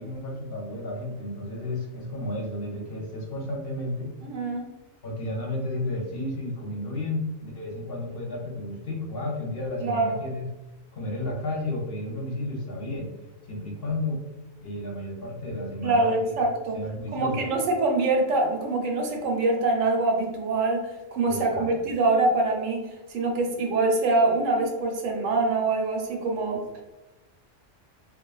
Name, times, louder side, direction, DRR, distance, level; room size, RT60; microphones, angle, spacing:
voice 1, 0.0-4.1 5.0-10.4 10.9-13.1 13.5-14.2 14.6-16.3 16.7-17.5 21.3-21.7, left 1 dB, 60° left, -2 dB, 0.7 m, -32 dB
voice 2, 4.2-4.7 9.8-10.3 15.8-16.8 17.1-22.8 23.1-26.6, right 2 dB, 85° right, 1 dB, 1.0 m, -24 dB
2.4 x 2.3 x 2.3 m, 1.0 s
omnidirectional pair, 1.3 m